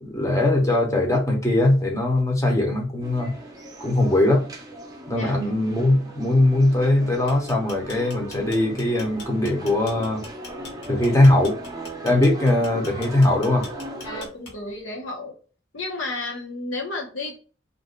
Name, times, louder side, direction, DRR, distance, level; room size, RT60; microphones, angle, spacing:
voice 1, 0.0-3.4 3.8-4.5 5.1-10.3 10.9-11.6 12.0-13.7, left 1 dB, 15° left, 0.7 m, -20 dB
sound 1, 3.0-14.3, right 1 dB, 20° right, 0.6 m, -38 dB
voice 2, 5.1-5.5 14.0-15.3 15.7-17.4, left 2 dB, 85° left, 1.0 m, -32 dB
sound 2, 7.1-14.8, left 3 dB, 60° left, 1.0 m, -42 dB
2.5 x 2.3 x 3.7 m
head